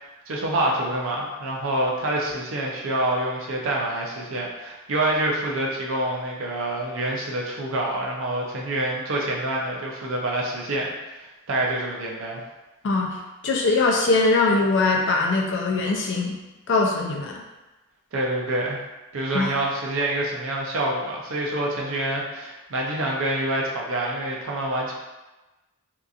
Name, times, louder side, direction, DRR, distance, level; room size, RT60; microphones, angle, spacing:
voice 1, 0.0-12.4 18.1-18.8 19.1-25.0, right 1 dB, 65° right, -2 dB, 0.6 m, -27 dB
voice 2, 12.8-16.4 16.7-17.4 19.3-19.5, left 3 dB, 60° left, 0 dB, 0.4 m, -22 dB
2.8 x 2.4 x 2.4 m, 1.1 s
head